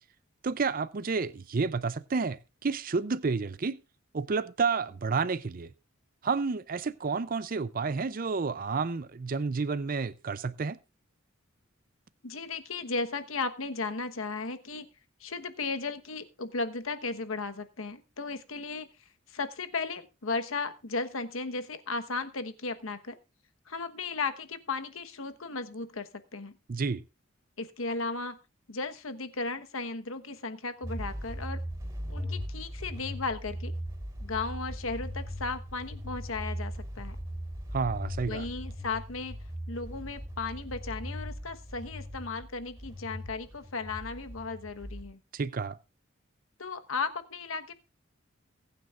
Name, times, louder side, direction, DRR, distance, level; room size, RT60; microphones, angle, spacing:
voice 1, 0.4-3.8 4.1-5.7 6.2-10.8 26.7-27.0 37.7-38.5 45.3-45.8, right 4 dB, 45° right, 0.5 m, -30 dB
voice 2, 12.2-14.9 15.2-23.2 23.7-26.6 27.6-28.4 28.7-31.6 32.1-33.7 34.2-37.2 38.3-39.4 39.7-45.2 46.6-47.7, left 4 dB, 85° left, 1.2 m, -35 dB
sound 1, 30.8-45.0, equal, 15° right, 3.6 m, -39 dB
22.5 x 9.3 x 2.5 m
head